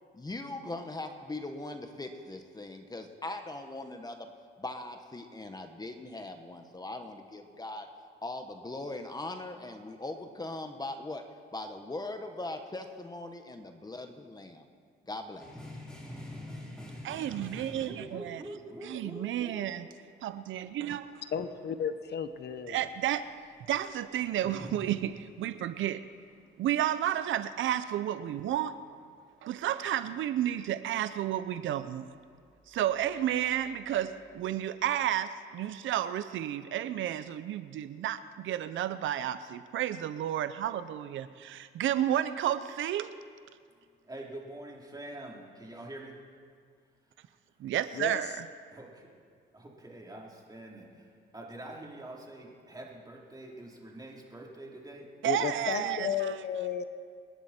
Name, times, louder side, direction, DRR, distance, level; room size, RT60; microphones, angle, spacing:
voice 1, 0.1-4.3 4.6-7.9 8.2-14.6 15.1-15.5, left 2 dB, 20° left, 6 dB, 1.4 m, -40 dB
sound 1, 15.4-18.4 21.1-21.8 22.1-25.3 32.6-33.8 34.4-34.5, left 1 dB, 5° left, 5.0 m, -46 dB
voice 2, 17.0-18.4 18.8-19.9 20.2-21.1 22.7-23.3 23.7-26.0 26.6-28.8 29.4-32.1 32.7-43.1 47.6-48.5 55.2-56.3, right 11 dB, 75° right, 13 dB, 0.7 m, -31 dB
voice 3, 17.8-19.7 44.0-46.2 48.7-49.1 49.5-55.1, right 1 dB, 20° right, -2 dB, 3.7 m, -45 dB
voice 4, 21.3-22.9 47.9-48.2 55.2-56.8, left 7 dB, 60° left, 10 dB, 1.0 m, -33 dB
27.5 x 11.0 x 4.4 m, 2.1 s
cardioid pair, 90°, 20 cm